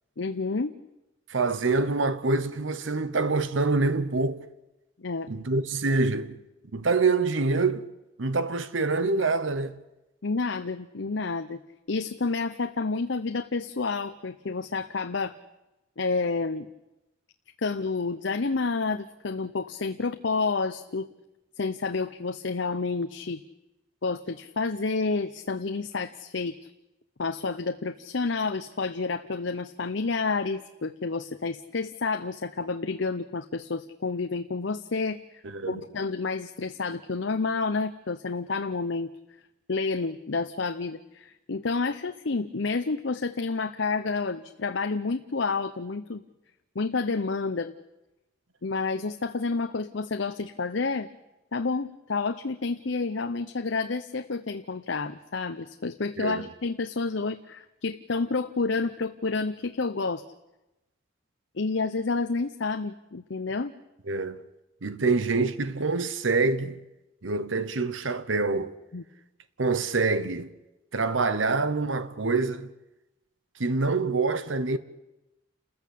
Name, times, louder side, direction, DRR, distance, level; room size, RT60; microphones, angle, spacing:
voice 1, 0.2-0.7 5.0-5.3 10.2-11.6 11.9-15.4 16.0-16.7 17.6-21.1 21.6-23.4 24.0-26.6 27.2-39.1 39.7-46.2 46.7-47.7 48.6-51.1 51.5-60.2 61.5-63.7 68.9-69.0, left 4 dB, 70° left, 0.8 m, -29 dB
voice 2, 1.3-4.4 5.3-6.4 6.7-7.9 8.2-9.7 35.4-35.8 56.2-56.5 64.1-64.4 64.8-66.8 67.2-68.7 69.6-70.5 70.9-72.7 73.6-74.8, right 3 dB, 80° right, 1.0 m, -26 dB
29.0 x 14.5 x 8.5 m
head